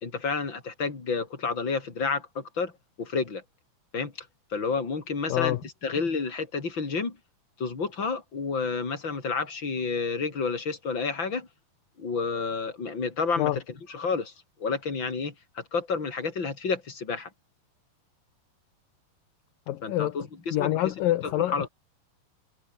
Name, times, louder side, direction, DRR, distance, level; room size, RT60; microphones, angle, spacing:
voice 1, 0.0-2.7 3.0-3.4 3.9-4.3 4.5-7.2 7.6-11.5 12.0-13.6 13.9-14.3 14.6-17.3 19.8-20.9 21.2-21.7, left 4 dB, 30° left, 4.7 m, -30 dB
voice 2, 5.3-5.6 13.4-13.6 19.7-20.2 20.5-21.5, left 14 dB, 70° left, 2.7 m, -26 dB
omnidirectional pair, 4.4 m